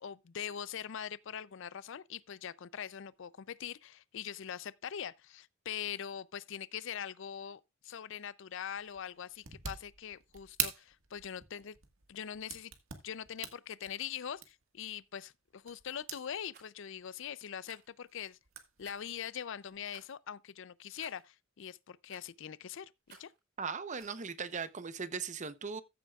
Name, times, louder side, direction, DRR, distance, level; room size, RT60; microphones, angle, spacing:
voice 1, 0.0-11.8 12.1-12.7 13.0-18.4 18.8-23.3, left 8 dB, 65° left, 0.5 m, -42 dB
sound 1, 8.7-16.3 16.8-17.3 17.6-20.0, right 9 dB, 85° right, 1.7 m, -44 dB
Rattle, 16.5-16.7 17.6-17.9 18.8-19.2 19.9-20.1 21.0-21.3 22.1-22.4 23.1-23.4 24.0-24.2, right 5 dB, 55° right, 4.7 m, -58 dB
voice 2, 23.6-25.8, right 5 dB, 35° right, 0.8 m, -38 dB
14.5 x 8.2 x 2.4 m
head